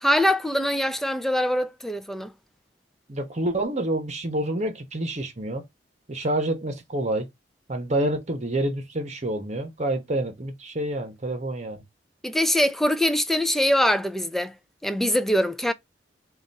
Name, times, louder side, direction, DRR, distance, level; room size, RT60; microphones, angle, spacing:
voice 1, 0.0-2.3 12.2-14.5 14.8-15.7, equal, ahead, 0.4 m, -23 dB
voice 2, 3.1-5.6 6.1-7.3 7.7-11.8, right 1 dB, 40° right, 1.0 m, -28 dB
3.9 x 2.5 x 4.0 m
head